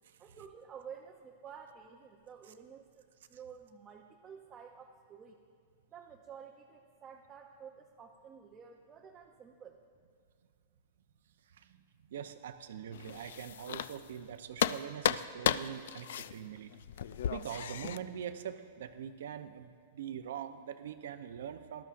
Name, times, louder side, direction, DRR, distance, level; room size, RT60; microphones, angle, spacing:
voice 1, 0.2-5.4 5.9-9.8, right 7 dB, 20° right, 1 dB, 0.6 m, -51 dB
voice 2, 12.1-16.7 17.3-21.8, right 9 dB, 75° right, 9 dB, 0.7 m, -43 dB
sound 1, 12.9-14.3 14.6-18.0, left 10 dB, 70° left, 0.3 m, -34 dB
18.0 x 12.5 x 2.6 m, 2.2 s
supercardioid pair, 160°, 0 cm